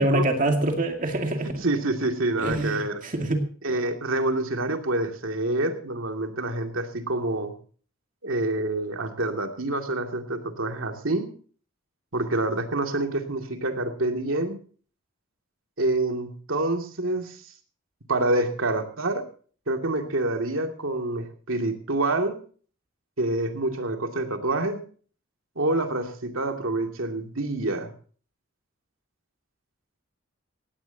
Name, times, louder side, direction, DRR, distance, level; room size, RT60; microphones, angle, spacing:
voice 1, 0.0-1.5 2.4-3.4, right 1 dB, 40° right, 4 dB, 2.3 m, -25 dB
voice 2, 1.6-3.0 3.6-7.5 8.2-11.3 12.1-14.6 15.8-17.4 18.1-19.2 19.7-22.3 23.2-24.8 25.6-27.9, right 2 dB, 85° right, 4 dB, 2.5 m, -27 dB
17.5 x 17.5 x 2.9 m, 0.43 s
head